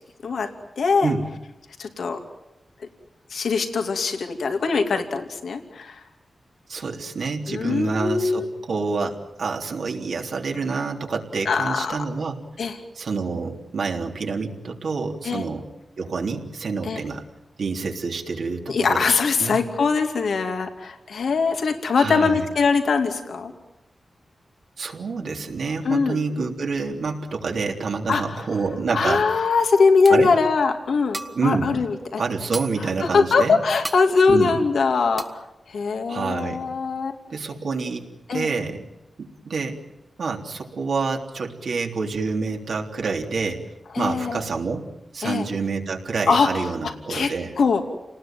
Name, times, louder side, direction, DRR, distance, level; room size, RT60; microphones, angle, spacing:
voice 1, 0.8-1.1 1.8-2.2 3.3-6.0 7.5-8.6 11.4-12.0 12.6-12.8 15.2-15.4 16.8-17.0 18.7-23.5 25.8-26.2 28.1-28.4 28.9-32.2 33.0-35.2 35.7-37.2 38.3-38.5 43.9-44.4 45.2-45.4 46.3-47.8, left 4 dB, 85° left, 5 dB, 2.6 m, -22 dB
voice 2, 6.7-12.4 12.9-15.6 16.0-17.2 17.6-19.6 21.9-22.4 24.8-29.4 30.1-30.3 31.3-31.8 32.2-33.6 34.3-34.6 36.1-36.6 37.3-38.9 39.2-39.8 40.2-43.7 44.0-44.8 45.1-47.5, right 4 dB, 75° right, 2 dB, 3.4 m, -27 dB
sound 1, 29.8-29.9 30.0-30.5 30.9-31.6 31.9-32.0 32.2-32.9 33.3-33.4 33.8-34.1 34.5-34.8 35.2-35.4, right 2 dB, 25° right, 1.6 m, -35 dB
29.0 x 19.5 x 9.2 m, 0.96 s
wide cardioid pair, 85°, 0 cm